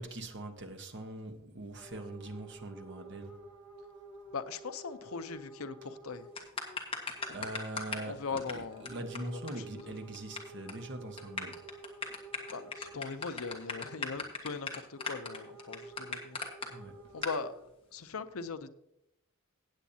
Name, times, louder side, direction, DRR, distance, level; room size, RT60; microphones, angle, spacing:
voice 1, 0.0-3.4 7.3-11.7 16.7-17.0, right 1 dB, 55° right, 1.2 m, -42 dB
sound 1, 1.8-6.9 7.2-7.5 8.7-14.1 15.0-17.7, right 2 dB, 10° right, 3.3 m, -51 dB
voice 2, 4.3-6.3 7.3-7.4 7.9-8.9 9.1-9.4 9.8-9.9 12.5-16.4 17.1-17.5 17.9-18.7, left 4 dB, 80° left, 0.7 m, -40 dB
sound 2, 6.4-8.1 8.4-8.5 8.9-9.0 9.2-9.3 9.5-9.6 9.8-10.4 10.7-10.8 11.2-16.7 17.2-17.4, left 4 dB, 25° left, 1.4 m, -37 dB
16.5 x 8.3 x 2.8 m
head